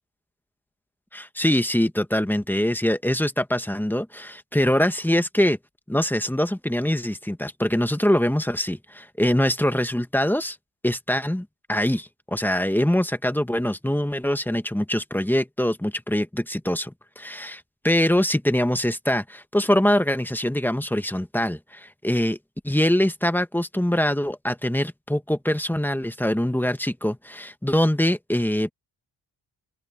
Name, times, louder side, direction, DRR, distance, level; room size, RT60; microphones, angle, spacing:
voice 1, 1.1-5.6 5.9-10.6 10.8-22.4 22.6-28.7, left 1 dB, 5° left, 1.3 m, -23 dB
open air
cardioid pair, 80°, 44 cm